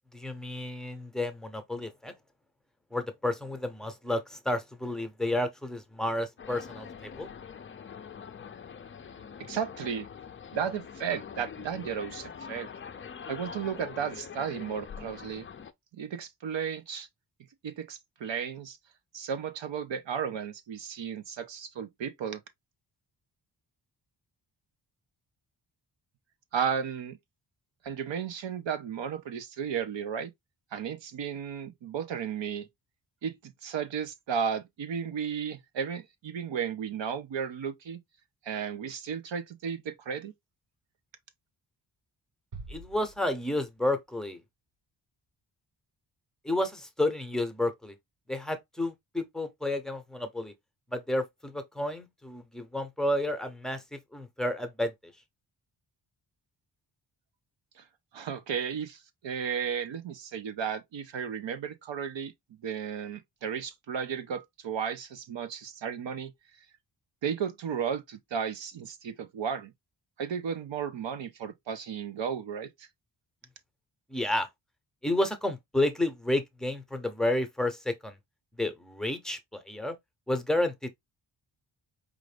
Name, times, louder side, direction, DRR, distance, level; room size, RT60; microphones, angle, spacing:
voice 1, 0.1-2.1 2.9-7.3 42.7-44.4 46.4-48.0 48.3-50.5 50.9-54.9 74.1-74.5 75.0-78.2 78.6-79.9 80.3-80.9, left 1 dB, ahead, 0.7 m, -31 dB
sound 1, 6.4-15.7, left 7 dB, 30° left, 0.4 m, -44 dB
voice 2, 9.4-10.1 10.5-12.7 13.3-15.5 15.9-17.1 17.6-18.8 19.1-22.4 26.5-27.2 27.8-30.3 30.7-32.7 33.2-38.0 38.4-40.3 57.8-57.9 58.1-62.3 62.6-66.3 67.2-69.7 70.2-72.9, right 7 dB, 80° right, 0.9 m, -34 dB
sound 2, 42.5-44.1, right 3 dB, 45° right, 1.1 m, -47 dB
4.9 x 2.5 x 3.2 m
wide cardioid pair, 135°, 44 cm